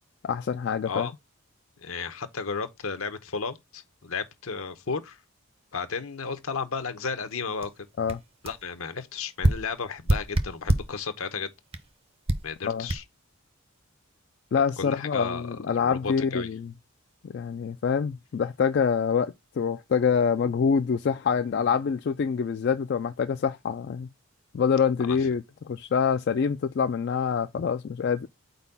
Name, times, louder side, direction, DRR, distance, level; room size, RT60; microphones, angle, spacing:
voice 1, 0.2-1.1 8.0-8.2 12.6-12.9 14.5-16.7 17.2-24.1 24.5-28.3, left 6 dB, 50° left, 0.3 m, -26 dB
voice 2, 1.8-5.2 5.7-7.9 8.4-11.5 12.4-13.0 14.8-16.5 25.1-25.3, left 5 dB, 75° left, 0.9 m, -33 dB
sound 1, 7.6-7.7 8.1-8.2 8.5-8.6 9.4-11.0 11.7-11.9 12.3-12.5 12.9-13.0, right 1 dB, 25° right, 0.6 m, -25 dB
4.5 x 4.1 x 5.4 m
head